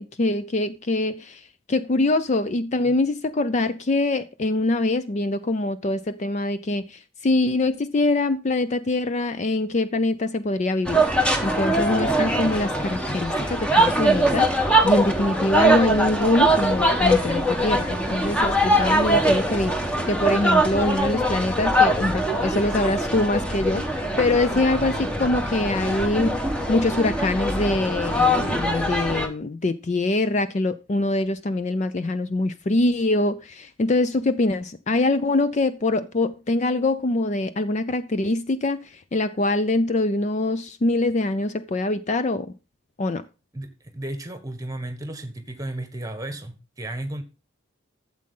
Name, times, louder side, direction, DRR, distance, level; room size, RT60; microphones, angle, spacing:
voice 1, 0.0-11.0 11.4-14.5 14.8-26.4 26.7-42.5 43.0-43.2, left 2 dB, 35° left, 0.4 m, -24 dB
sound 1, 10.8-29.3, right 1 dB, 5° left, 1.1 m, -22 dB
voice 2, 43.5-47.2, right 1 dB, 15° right, 1.4 m, -34 dB
12.5 x 7.5 x 3.8 m
head